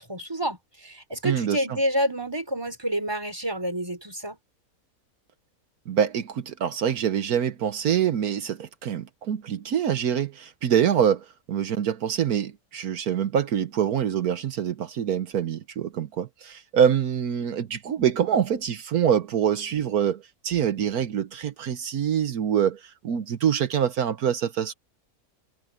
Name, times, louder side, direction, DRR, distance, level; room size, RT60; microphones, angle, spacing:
voice 1, 0.0-4.4, equal, 15° right, 4.0 m, -28 dB
voice 2, 1.2-1.8 5.9-24.7, right 8 dB, 80° right, 1.5 m, -25 dB
omnidirectional pair, 1.6 m